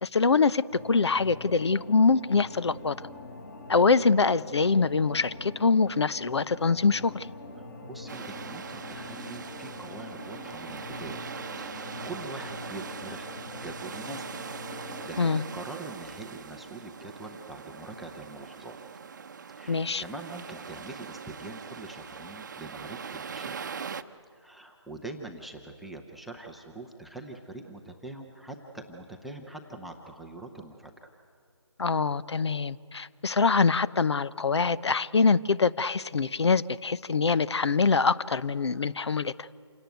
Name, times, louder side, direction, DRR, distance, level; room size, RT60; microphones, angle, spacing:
voice 1, 0.0-2.9 3.7-7.3 15.2-15.4 19.7-20.0 31.8-39.5, left 4 dB, 65° left, 17 dB, 0.8 m, -24 dB
sound 1, 0.7-15.2, left 2 dB, 40° left, 4.3 m, -44 dB
voice 2, 7.6-11.3 11.6-13.3 13.5-14.4 14.8-18.8 19.5-23.7 24.3-30.9, right 2 dB, ahead, 0 dB, 0.6 m, -43 dB
sound 2, 8.1-24.0, right 6 dB, 40° right, 0.8 m, -41 dB
27.5 x 17.5 x 9.2 m, 2.2 s
figure-of-eight pair, 160°, 15 cm